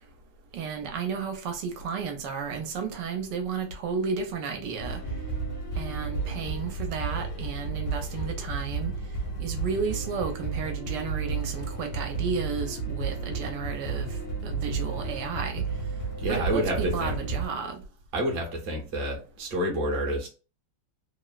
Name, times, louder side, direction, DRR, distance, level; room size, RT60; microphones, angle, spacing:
voice 1, 0.5-5.0 5.8-8.9 9.4-14.2 14.4-15.6 16.3-17.8, right 5 dB, 80° right, 1.2 m, -33 dB
sound 1, 4.8-17.5, right 4 dB, 90° left, 1.5 m, -32 dB
voice 2, 16.2-17.1 18.1-20.3, right 1 dB, 45° right, 0.8 m, -28 dB
3.4 x 2.0 x 2.3 m
omnidirectional pair, 1.9 m